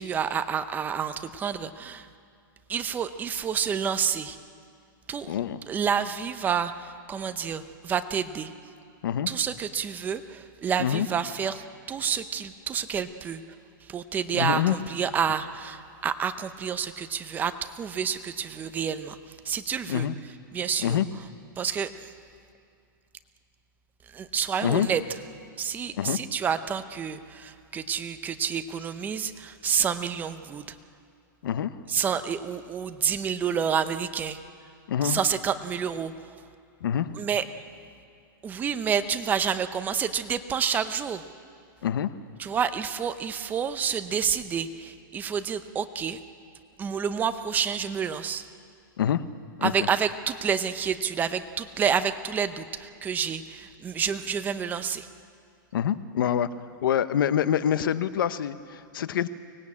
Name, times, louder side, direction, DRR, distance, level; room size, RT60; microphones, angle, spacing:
voice 1, 0.0-2.1 2.7-4.4 5.1-5.3 5.7-8.5 9.3-13.4 13.8-20.1 20.5-21.0 21.6-22.1 24.1-25.0 25.6-30.8 31.9-34.4 35.0-36.3 37.2-37.4 38.4-41.2 42.4-46.2 46.8-48.4 49.6-55.1, right 7 dB, 15° right, 10 dB, 0.7 m, -29 dB
voice 2, 5.3-5.6 9.0-9.3 10.8-11.1 14.4-14.7 19.9-20.1 20.8-21.0 24.6-24.9 26.0-26.2 31.4-31.8 34.9-35.2 36.8-37.2 41.8-42.2 49.0-49.3 49.6-49.7 55.7-56.5 56.8-59.3, left 9 dB, 80° left, 13 dB, 1.0 m, -26 dB
24.0 x 19.5 x 8.6 m, 2.3 s
supercardioid pair, 155°, 11 cm